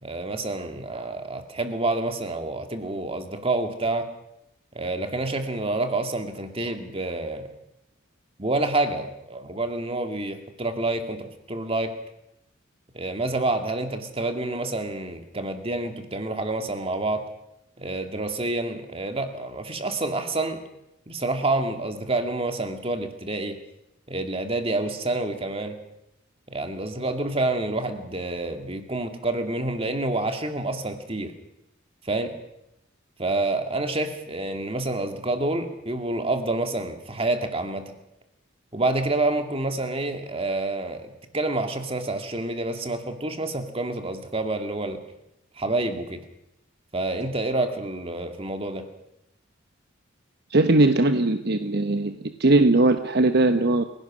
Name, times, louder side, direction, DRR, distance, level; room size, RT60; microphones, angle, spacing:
voice 1, 0.0-4.1 4.7-7.5 8.4-11.9 12.9-17.2 17.8-20.6 21.1-23.6 24.1-25.8 26.5-31.3 32.0-32.3 33.2-37.9 38.7-45.0 45.6-46.2 46.9-48.8, right 2 dB, 30° right, 6 dB, 2.4 m, -28 dB
voice 2, 50.5-53.8, right 2 dB, 55° right, 8 dB, 1.0 m, -20 dB
30.0 x 17.5 x 6.3 m, 0.84 s
head